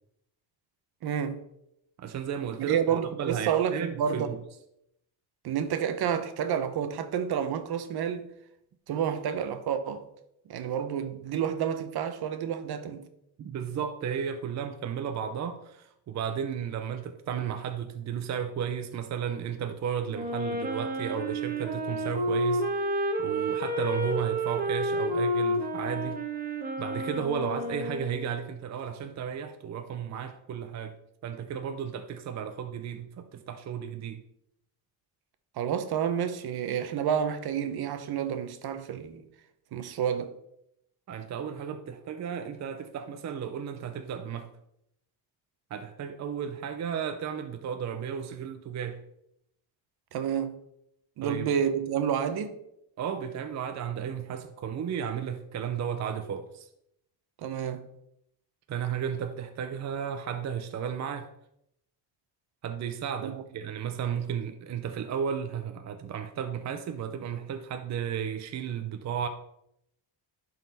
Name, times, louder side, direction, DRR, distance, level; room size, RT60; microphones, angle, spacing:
voice 1, 1.0-1.4 2.7-4.3 5.4-8.3 8.9-10.1 10.5-13.0 35.6-39.2 39.7-40.3 50.1-50.6 51.2-52.6 57.4-57.9 63.2-63.4, right 8 dB, 65° right, 0.9 m, -29 dB
voice 2, 2.0-2.8 3.2-4.4 13.4-26.2 26.8-30.9 31.2-34.2 41.1-44.5 45.7-49.0 51.2-51.5 53.0-56.7 58.7-61.3 62.6-69.3, right 8 dB, 40° right, 0.6 m, -34 dB
Wind instrument woodwind instrument, 20.1-28.4, right 1 dB, 20° right, 1.3 m, -30 dB
11.0 x 4.2 x 4.0 m
cardioid pair, 130°, 41 cm